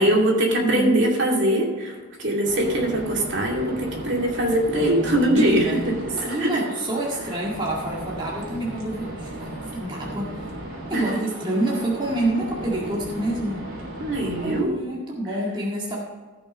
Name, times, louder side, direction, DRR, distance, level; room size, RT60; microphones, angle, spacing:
voice 1, 0.0-6.6 10.9-11.2 14.0-14.7, right 1 dB, 55° right, -1 dB, 2.4 m, -22 dB
voice 2, 0.6-1.0 4.8-5.9 6.3-10.3 10.9-11.1 11.4-13.6 14.4-16.0, right 1 dB, 20° right, -4 dB, 1.9 m, -27 dB
sound 1, 2.4-14.6, right 1 dB, 75° right, 3.1 m, -36 dB
15.0 x 6.1 x 5.2 m, 1.4 s
head